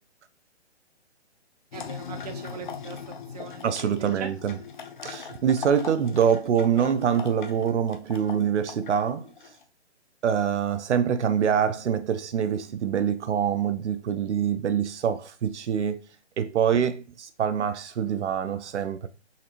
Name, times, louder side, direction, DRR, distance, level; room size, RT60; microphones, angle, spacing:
sound 1, 1.7-9.6, left 6 dB, 45° left, 0.5 m, -40 dB
voice 1, 1.7-3.0 3.3-4.3, right 6 dB, 35° right, 0.6 m, -40 dB
voice 2, 3.6-4.5 5.0-9.2 10.2-16.0 16.4-19.1, right 8 dB, 80° right, 0.5 m, -25 dB
4.0 x 2.9 x 2.4 m
hypercardioid pair, 150°, 35 cm